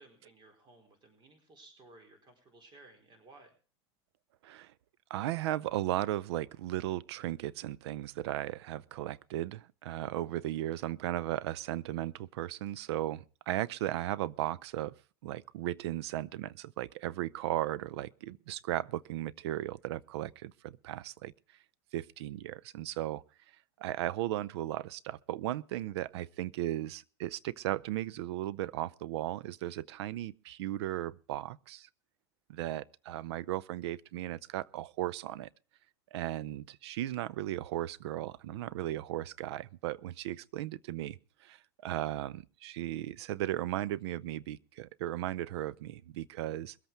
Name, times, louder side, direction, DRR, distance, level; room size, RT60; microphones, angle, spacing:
voice 1, 0.0-3.5, right 2 dB, 30° right, 4.2 m, -58 dB
voice 2, 5.1-15.0 15.2-21.3 21.9-23.2 23.8-31.9 32.5-35.5 36.1-46.8, right 14 dB, 75° right, 0.5 m, -36 dB
22.0 x 8.1 x 4.5 m
hypercardioid pair, 105°, 14 cm